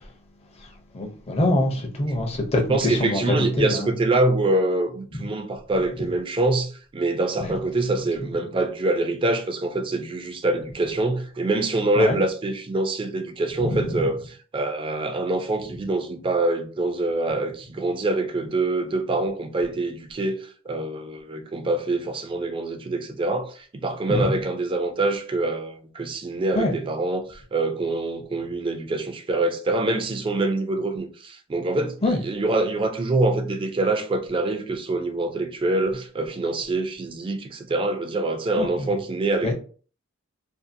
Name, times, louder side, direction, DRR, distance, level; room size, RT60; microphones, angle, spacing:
voice 1, 0.9-2.6 3.0-3.9 7.4-7.5 12.0-12.2 13.6-14.0 24.1-24.3 26.5-26.7 32.0-32.2 38.6-38.7 39.4-39.5, left 1 dB, 30° left, 0.5 m, -24 dB
voice 2, 2.7-39.5, right 2 dB, 25° right, 0.3 m, -25 dB
2.6 x 2.4 x 2.6 m
head